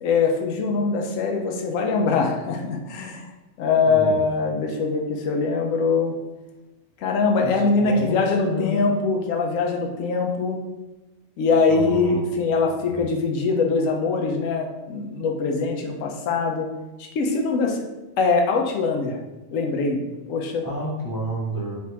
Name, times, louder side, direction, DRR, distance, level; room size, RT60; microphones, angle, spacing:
voice 1, 0.0-3.3 3.6-6.1 7.0-10.6 11.4-16.7 17.0-17.8 18.2-19.2 19.5-20.0 20.3-20.6, left 4 dB, 80° left, 2 dB, 1.0 m, -22 dB
voice 2, 7.4-8.2 8.4-8.8 11.7-12.3 12.9-13.0 20.6-21.8, equal, 25° left, -2 dB, 0.4 m, -30 dB
3.4 x 2.5 x 4.2 m, 1.1 s
omnidirectional pair, 1.3 m